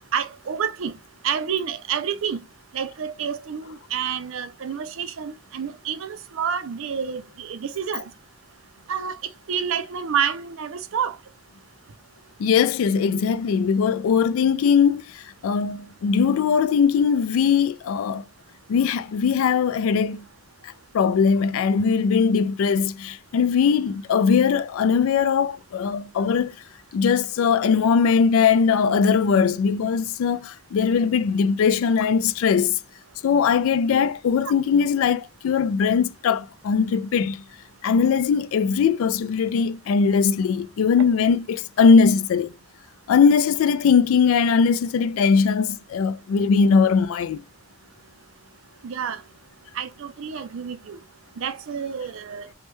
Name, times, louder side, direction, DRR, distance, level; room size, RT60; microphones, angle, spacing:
voice 1, 0.1-0.9 1.2-2.4 2.7-8.1 8.9-9.2 9.5-11.2 34.4-34.5 48.8-49.2 49.8-51.0 51.4-52.5, right 7 dB, 65° right, 0.4 m, -28 dB
voice 2, 12.4-15.0 15.4-18.2 18.7-20.2 20.9-26.5 26.9-32.8 33.2-37.4 37.8-42.5 43.1-47.4, left 6 dB, 70° left, 0.3 m, -20 dB
3.2 x 2.1 x 3.0 m
head